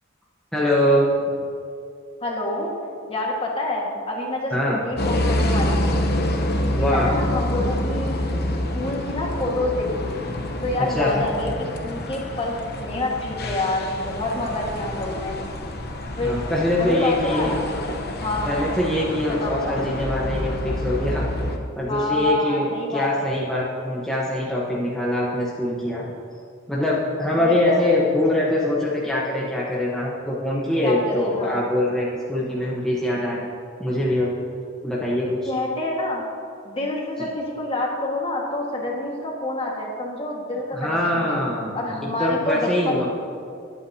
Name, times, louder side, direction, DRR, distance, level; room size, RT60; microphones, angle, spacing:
voice 1, 0.5-1.1 4.5-4.8 6.7-7.1 10.9-11.2 16.2-17.5 18.5-21.2 21.8-26.1 26.7-33.4 33.8-34.3 34.8-35.5 40.7-41.7 42.0-43.1, left 1 dB, 5° left, -6 dB, 1.0 m, -23 dB
voice 2, 2.2-2.7 3.1-6.0 6.6-8.2 8.7-10.1 10.6-15.4 16.2-16.4 16.8-17.6 18.2-18.7 19.4-19.8 21.9-23.3 27.4-27.9 30.8-31.7 35.5-36.2 36.6-41.4 41.7-43.1, left 1 dB, 25° left, -1 dB, 1.6 m, -27 dB
sound 1, 5.0-21.6, left 1 dB, 50° left, 0.9 m, -27 dB
20.5 x 8.6 x 2.8 m, 2.4 s
head